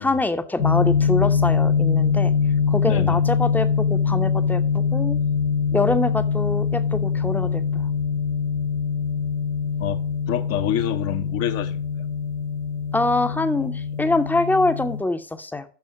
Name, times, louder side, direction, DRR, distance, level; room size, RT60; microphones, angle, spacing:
voice 1, 0.0-2.3 2.7-4.6 4.9-5.2 5.7-7.9 12.9-15.6, left 2 dB, 5° left, 0.7 m, -24 dB
sound 1, 0.6-15.0, left 6 dB, 80° left, 0.8 m, -23 dB
voice 2, 2.9-3.2 9.8-11.8, left 11 dB, 45° left, 0.8 m, -27 dB
6.3 x 5.8 x 6.9 m
figure-of-eight pair, 65°, 34 cm